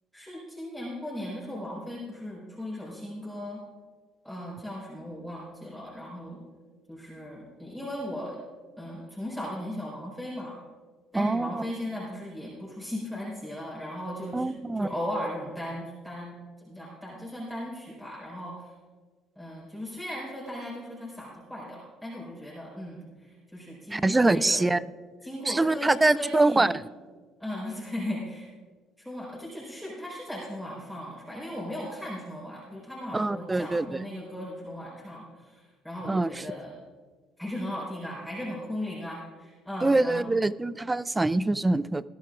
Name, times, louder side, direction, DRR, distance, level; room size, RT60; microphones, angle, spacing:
voice 1, 0.1-3.6 4.2-6.4 6.9-8.4 8.8-10.6 11.1-18.7 19.4-24.6 25.2-26.7 27.4-28.5 29.0-36.7 37.4-40.3, left 1 dB, 5° left, -5 dB, 4.3 m, -37 dB
voice 2, 11.1-11.6 14.3-14.9 23.9-24.8 25.5-26.7 33.1-33.9 36.1-36.4 39.8-42.0, right 2 dB, 15° right, 18 dB, 0.4 m, -24 dB
19.5 x 12.5 x 2.5 m, 1.4 s
supercardioid pair, 80°, 0 cm